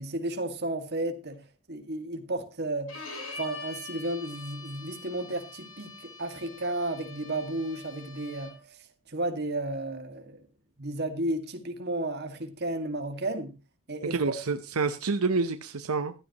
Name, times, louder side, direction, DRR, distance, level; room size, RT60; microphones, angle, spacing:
voice 1, 0.0-3.0 3.3-8.5 9.1-10.4 10.8-13.6 13.9-14.2, right 1 dB, 50° right, 2.0 m, -33 dB
Bowed string instrument, 2.9-8.7, left 3 dB, 65° left, 4.7 m, -44 dB
voice 2, 14.1-16.1, right 4 dB, 85° right, 0.8 m, -28 dB
15.0 x 12.5 x 3.0 m
head